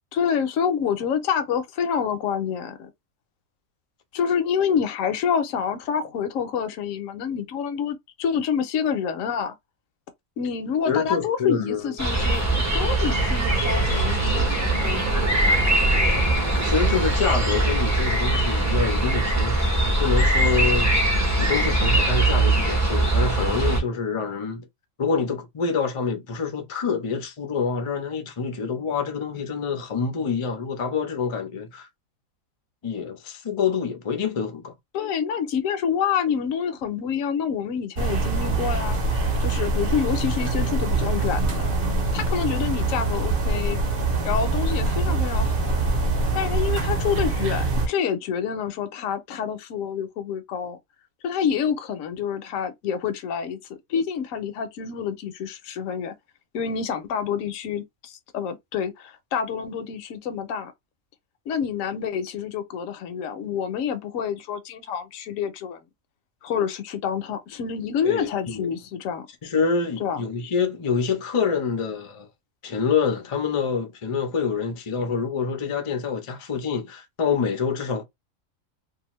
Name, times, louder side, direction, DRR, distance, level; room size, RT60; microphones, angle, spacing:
voice 1, 0.1-2.9 4.1-9.6 10.4-15.2 34.9-39.0 39.4-41.7 42.1-43.8 44.2-45.8 46.3-50.8 51.2-53.6 53.9-56.1 56.5-60.7 61.5-65.8 66.4-69.3 70.0-70.2, left 7 dB, 75° left, 1.0 m, -27 dB
voice 2, 10.8-11.9 16.6-20.9 21.4-24.7 25.0-31.9 32.8-34.7 68.0-68.7 69.4-72.3 72.6-78.0, left 5 dB, 45° left, 0.4 m, -26 dB
sound 1, 12.0-23.8, right 1 dB, 15° right, 0.6 m, -21 dB
sound 2, 12.2-17.6, right 6 dB, 70° right, 0.9 m, -32 dB
sound 3, 38.0-47.9, right 3 dB, 45° right, 0.9 m, -24 dB
2.7 x 2.4 x 3.0 m
omnidirectional pair, 1.4 m